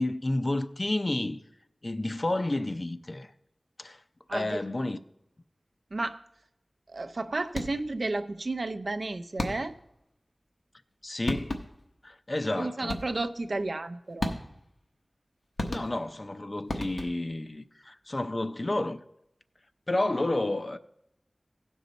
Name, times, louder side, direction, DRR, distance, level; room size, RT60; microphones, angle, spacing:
voice 1, 0.0-1.4 1.8-3.3 3.8-4.0 4.3-5.0 11.0-11.6 12.0-13.0 15.7-19.0 19.9-20.8, left 2 dB, 40° left, 0.5 m, -30 dB
voice 2, 4.3-4.6 5.9-6.2 6.9-9.8 12.5-14.3, right 2 dB, 70° right, 0.5 m, -32 dB
sound 1, 7.5-8.0 9.4-9.9 10.9-11.0 11.3-11.9 12.9-13.4 14.2-14.8 15.6-16.2 16.7-17.4, left 2 dB, 85° left, 1.0 m, -34 dB
16.0 x 5.4 x 4.0 m
wide cardioid pair, 65°, 0 cm